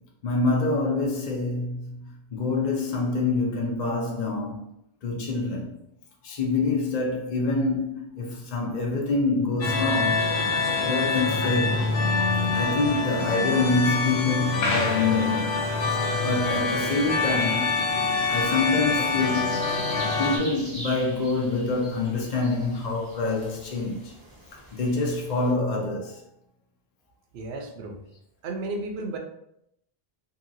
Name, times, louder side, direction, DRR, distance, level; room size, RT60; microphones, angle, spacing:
voice 1, 0.2-2.0 2.3-4.6 5.0-5.7 6.2-10.3 10.8-11.9 12.5-15.5 16.2-17.7 18.3-19.6 20.2-24.1 24.7-26.2, left 3 dB, 50° left, 0.6 m, -26 dB
sound 1, 9.6-20.4, left 3 dB, 85° left, 0.9 m, -25 dB
sound 2, 15.3-25.5, equal, 25° right, 0.7 m, -44 dB
voice 2, 27.3-28.0 28.4-29.2, right 2 dB, 85° right, 0.8 m, -33 dB
2.7 x 2.7 x 2.6 m
omnidirectional pair, 1.0 m